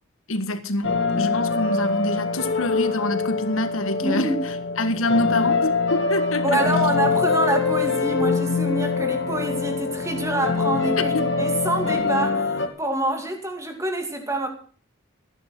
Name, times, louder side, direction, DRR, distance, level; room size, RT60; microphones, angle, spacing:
voice 1, 0.3-6.6 11.0-11.3, left 1 dB, 85° left, 1.7 m, -26 dB
sound 1, 0.8-12.7, left 4 dB, 60° left, 2.2 m, -24 dB
voice 2, 4.0-4.4 6.4-14.5, right 2 dB, 15° right, 2.7 m, -26 dB
15.5 x 11.0 x 6.1 m
head